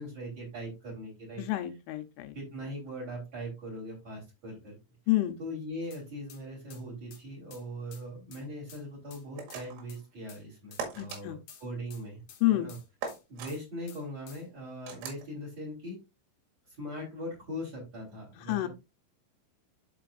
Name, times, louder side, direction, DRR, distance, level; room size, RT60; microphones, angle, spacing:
voice 1, 0.0-1.4 2.3-4.8 5.4-12.2 12.5-12.8 13.3-16.0 16.6-18.7, equal, 35° right, 4.6 m, -40 dB
voice 2, 1.4-2.4 5.1-5.4 11.0-11.4 12.4-12.7 18.5-18.7, left 16 dB, 85° left, 3.6 m, -28 dB
sound 1, 5.9-6.0 6.3-6.4 6.7-6.8 7.1-7.2 7.5-7.6 7.9-8.0 8.3-8.4 8.7-8.8 9.1-9.2 9.5-9.6 9.9-10.0 10.3-10.4 10.7-11.2 11.5-13.2 13.5-13.6 13.9-14.4, left 8 dB, 60° left, 2.2 m, -52 dB
sound 2, 9.4-9.9 10.8-11.2 13.0-13.5 14.9-15.2, right 5 dB, 90° right, 4.3 m, -39 dB
12.5 x 5.1 x 2.6 m
omnidirectional pair, 5.6 m